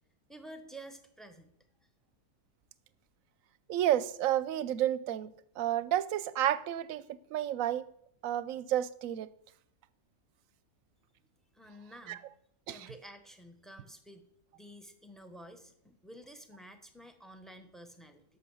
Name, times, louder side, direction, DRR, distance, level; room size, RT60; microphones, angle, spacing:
voice 1, 0.3-1.5 11.5-12.3 12.7-18.2, right 1 dB, ahead, 0.8 m, -51 dB
voice 2, 3.7-7.0 7.3-7.8 8.2-9.3 12.1-12.2 12.7-12.8, right 12 dB, 70° right, 0.9 m, -31 dB
12.5 x 5.8 x 7.0 m
omnidirectional pair, 1.6 m